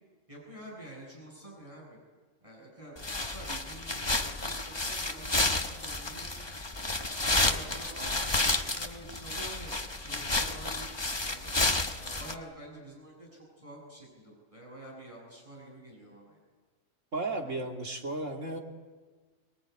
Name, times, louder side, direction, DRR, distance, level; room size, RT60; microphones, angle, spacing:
voice 1, 0.3-2.0 2.4-6.4 7.0-11.5 12.0-16.4 17.4-17.6, right 1 dB, 25° right, -2 dB, 7.8 m, -48 dB
sound 1, 3.0-12.3, left 2 dB, 20° left, 1.3 m, -31 dB
voice 2, 17.1-18.6, right 2 dB, 70° right, 2 dB, 3.1 m, -34 dB
24.5 x 22.0 x 9.6 m, 1.4 s
omnidirectional pair, 1.3 m